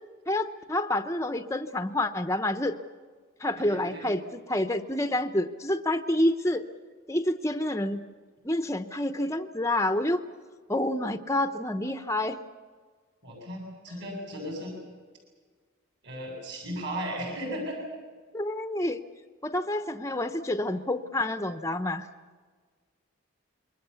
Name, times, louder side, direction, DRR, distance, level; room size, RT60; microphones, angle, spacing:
voice 1, 0.3-2.8 3.4-6.6 7.1-8.0 8.4-10.2 10.7-12.4 18.3-19.0 19.4-22.1, left 1 dB, 15° left, 8 dB, 0.9 m, -28 dB
voice 2, 3.5-4.1 13.2-14.7 16.0-17.8, equal, 55° right, 0 dB, 8.0 m, -36 dB
27.5 x 22.5 x 7.0 m, 1.5 s
head